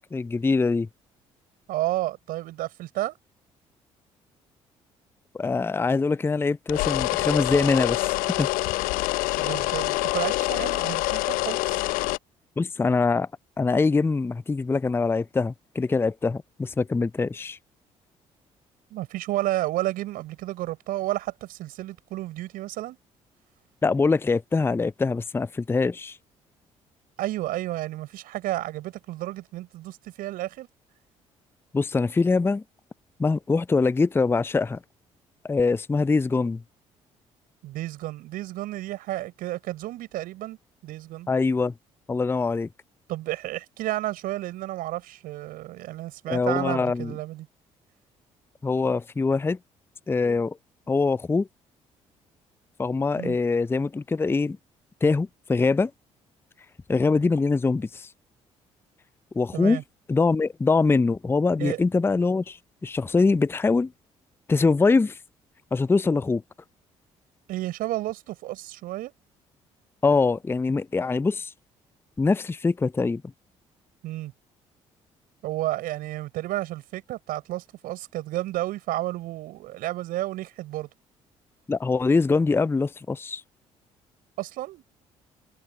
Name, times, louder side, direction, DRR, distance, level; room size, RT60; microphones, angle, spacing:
voice 1, 0.1-0.9 5.3-8.5 9.2-9.4 12.6-13.3 13.6-17.6 23.8-26.2 31.7-32.6 33.2-34.8 35.4-36.6 41.3-41.7 42.1-42.7 46.3-47.1 48.6-49.6 50.1-50.6 50.9-51.5 52.8-54.6 55.0-55.9 56.9-58.1 59.3-59.8 60.1-62.6 62.8-63.9 64.5-65.2 65.7-66.4 70.0-71.5 72.2-73.2 81.7-83.4, left 4 dB, 15° left, 0.4 m, -23 dB
voice 2, 1.7-3.2 9.4-11.8 18.9-23.0 27.2-30.7 37.6-40.6 40.8-41.3 43.1-47.5 53.2-53.4 59.5-59.8 61.6-61.8 67.5-69.1 74.0-74.3 75.4-80.9 84.4-84.8, right 16 dB, 70° right, 6.3 m, -31 dB
sound 1, 6.7-12.2, left 22 dB, 70° left, 0.5 m, -26 dB
hypercardioid pair, 50°, 15 cm